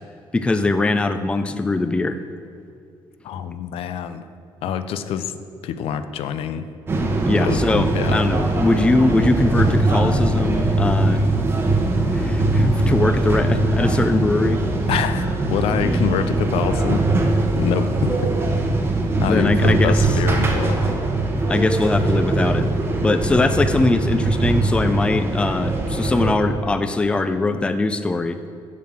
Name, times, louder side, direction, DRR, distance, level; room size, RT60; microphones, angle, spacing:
voice 1, 0.3-2.2 7.3-11.2 11.7-11.8 12.1-14.6 19.3-20.0 21.5-22.7 23.0-28.4, left 2 dB, 10° left, 10 dB, 0.3 m, -21 dB
voice 2, 3.2-4.2 4.6-5.3 5.6-6.7 7.4-8.2 14.9-17.0 17.6-18.3 19.2-21.0, left 8 dB, 90° left, 11 dB, 0.5 m, -25 dB
sound 1, 6.9-26.3, right 2 dB, 25° right, 0.8 m, -21 dB
7.3 x 6.5 x 5.8 m, 2.4 s
cardioid pair, 160°, 9 cm